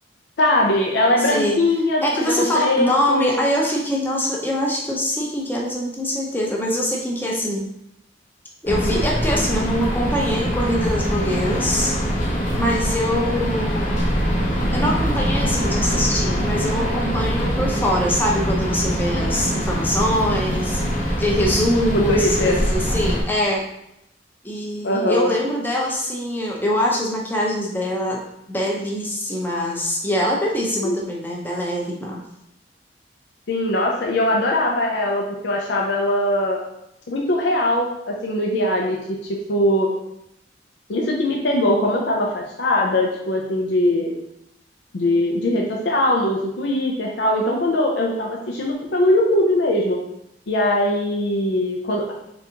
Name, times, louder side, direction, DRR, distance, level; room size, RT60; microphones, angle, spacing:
voice 1, 0.4-3.4 21.9-22.6 24.8-25.3 30.8-31.0 33.5-36.6 37.1-39.0 39.2-39.9 40.9-44.1 44.9-50.0 50.5-52.1, left 1 dB, 75° left, -1 dB, 0.5 m, -21 dB
voice 2, 2.0-7.7 8.6-12.0 12.5-14.0 14.7-20.8 21.2-23.6 24.4-28.2 28.5-32.2, equal, 10° left, -2 dB, 0.7 m, -23 dB
sound 1, 8.7-23.2, equal, 45° left, 1.0 m, -23 dB
3.9 x 3.5 x 2.8 m, 0.80 s
head